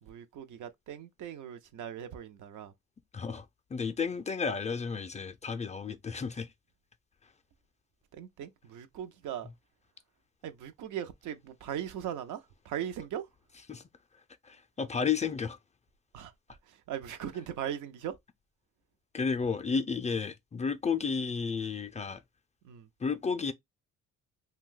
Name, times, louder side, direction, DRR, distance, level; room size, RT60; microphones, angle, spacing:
voice 1, 0.0-2.7 8.1-9.5 10.4-13.2 16.1-16.3 16.7-18.1 22.6-22.9, right 10 dB, 80° right, 0.6 m, -39 dB
voice 2, 3.1-3.5 3.7-6.5 13.7-13.8 14.4-15.6 19.1-22.2 23.0-23.5, left 5 dB, 25° left, 0.4 m, -32 dB
2.6 x 2.2 x 3.7 m
cardioid pair, 90°, 30 cm